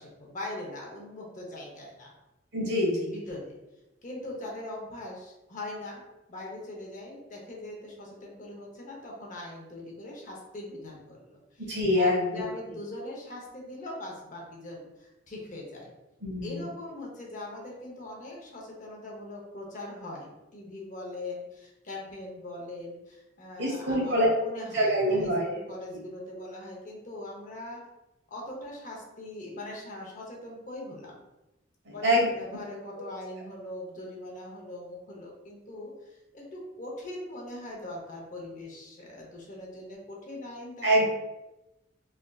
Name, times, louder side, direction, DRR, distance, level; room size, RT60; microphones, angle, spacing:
voice 1, 0.0-2.1 3.1-3.6 4.0-6.0 6.3-11.7 11.9-15.9 16.4-27.8 28.3-31.2 31.9-40.9, left 1 dB, 45° left, -1 dB, 0.7 m, -41 dB
voice 2, 2.5-3.1 11.6-12.4 16.2-16.6 23.6-24.3 24.7-25.5 31.8-32.3 40.8-41.1, equal, 65° right, -3 dB, 1.1 m, -25 dB
3.3 x 2.5 x 2.3 m, 0.98 s
head